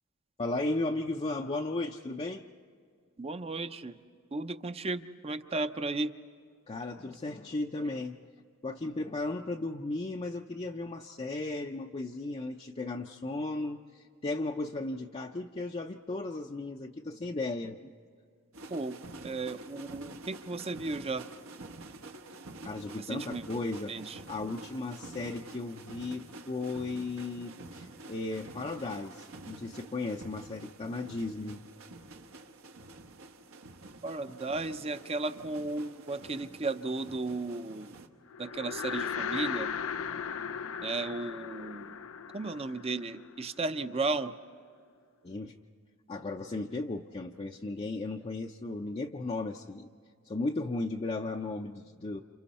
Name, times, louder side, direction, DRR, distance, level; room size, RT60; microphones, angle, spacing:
voice 1, 0.4-2.5 6.7-8.2 8.6-17.9 22.6-31.6 45.2-45.5 46.1-49.9 50.3-52.2, left 2 dB, 30° left, 2 dB, 0.5 m, -35 dB
voice 2, 3.2-4.0 4.3-6.1 18.7-19.0 19.2-21.3 23.0-23.5 23.9-24.2 34.0-37.9 38.4-39.7 40.8-42.0 42.3-44.4, right 3 dB, 30° right, 10 dB, 0.6 m, -34 dB
sound 1, 18.5-38.1, right 2 dB, 80° right, 1.2 m, -48 dB
sound 2, 38.3-43.7, left 7 dB, 75° left, 0.5 m, -37 dB
30.0 x 28.0 x 4.2 m, 2.2 s
head